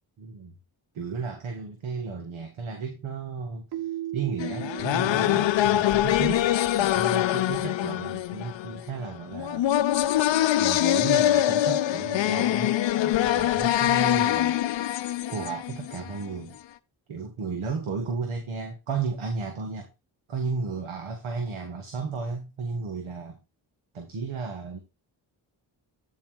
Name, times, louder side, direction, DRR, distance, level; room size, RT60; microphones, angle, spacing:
voice 1, 0.2-0.5 0.9-6.5 6.8-9.7 10.6-14.8 15.3-16.6 17.1-19.9 20.3-23.4 23.9-24.8, right 4 dB, 70° right, 5 dB, 1.6 m, -34 dB
Keyboard (musical), 3.7-6.6, right 13 dB, 50° right, 0.8 m, -37 dB
sound 1, 4.4-16.3, left 13 dB, 60° left, 0.7 m, -24 dB
8.7 x 4.6 x 4.6 m, 0.25 s
supercardioid pair, 40°, 49 cm